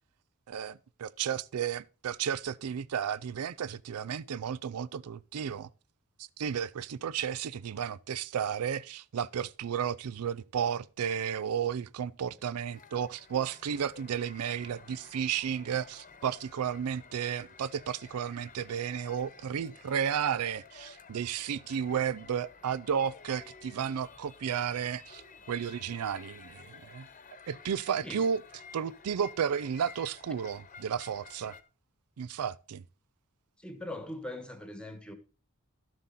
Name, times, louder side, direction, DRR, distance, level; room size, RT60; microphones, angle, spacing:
voice 1, 0.5-5.7 6.2-25.2 25.5-27.1 27.5-28.4 28.7-31.6 32.2-32.8, right 8 dB, 85° right, 0.4 m, -33 dB
sound 1, 12.7-31.6, left 5 dB, 35° left, 1.1 m, -53 dB
voice 2, 33.6-35.1, left 1 dB, 5° left, 1.4 m, -41 dB
13.0 x 7.5 x 4.1 m
head